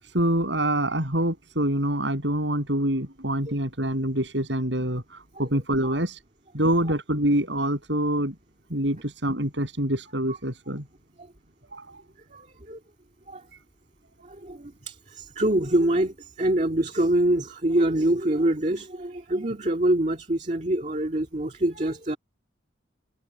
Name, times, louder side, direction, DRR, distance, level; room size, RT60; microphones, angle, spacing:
voice 1, 0.0-6.2 6.5-8.3 8.7-10.8 11.6-12.0, right 1 dB, 70° right, 7.8 m, -26 dB
voice 2, 12.3-12.8 13.3-13.4 14.2-22.2, right 1 dB, 40° right, 2.1 m, -25 dB
head